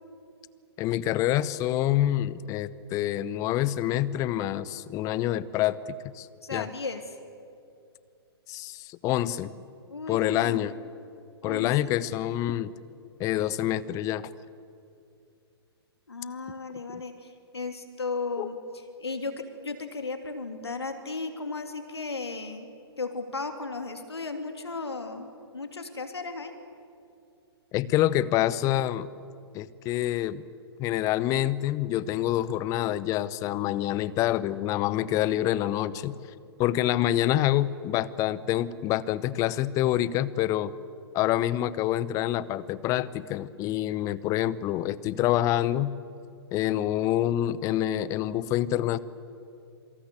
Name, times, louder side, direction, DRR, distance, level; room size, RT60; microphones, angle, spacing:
voice 1, 0.8-5.8 6.1-6.7 8.5-9.5 10.1-10.7 11.4-12.7 13.2-14.3 16.9-17.0 18.4-18.5 27.7-29.1 29.5-30.4 30.8-36.1 36.6-40.7 41.1-45.9 46.5-49.0, left 13 dB, 25° left, 18 dB, 0.9 m, -27 dB
voice 2, 6.4-7.0 9.9-10.7 11.4-12.0 16.1-18.6 19.0-19.3 19.6-22.7 23.0-26.5, left 3 dB, 75° left, 7 dB, 2.9 m, -35 dB
27.5 x 25.0 x 8.2 m, 2.5 s
figure-of-eight pair, 120°, 14 cm